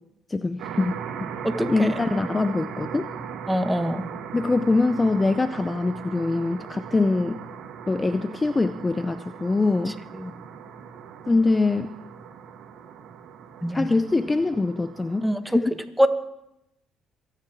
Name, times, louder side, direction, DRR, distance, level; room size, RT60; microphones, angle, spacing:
voice 1, 0.3-1.0 1.7-3.1 4.3-7.4 7.9-10.0 11.3-11.9 13.7-15.7, left 3 dB, 25° left, 11 dB, 0.6 m, -23 dB
sound 1, 0.6-15.3, right 7 dB, 70° right, 1.3 m, -38 dB
voice 2, 1.4-1.9 3.5-4.1 10.2-10.3 13.6-13.8 15.2-15.4 16.0-16.1, equal, 5° right, 8 dB, 1.4 m, -23 dB
27.5 x 10.0 x 3.6 m, 0.85 s
supercardioid pair, 60°, 0 cm